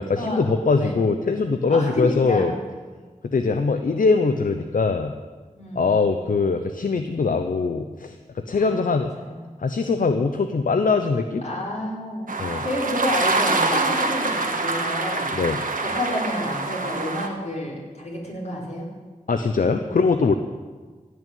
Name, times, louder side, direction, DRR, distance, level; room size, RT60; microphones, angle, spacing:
voice 1, 0.0-2.5 3.2-5.1 5.7-9.1 9.6-11.4 12.4-12.6 15.3-15.6 19.3-20.3, left 4 dB, 75° left, 7 dB, 0.7 m, -22 dB
voice 2, 1.7-2.5 5.6-5.9 8.5-8.9 9.2-9.4 11.4-12.3 12.6-15.4 15.8-18.9, left 1 dB, 50° left, -4 dB, 4.7 m, -29 dB
sound 1, 12.3-17.3, right 3 dB, 75° right, 1.5 m, -25 dB
16.5 x 6.3 x 9.2 m, 1.4 s
wide cardioid pair, 55°, 14 cm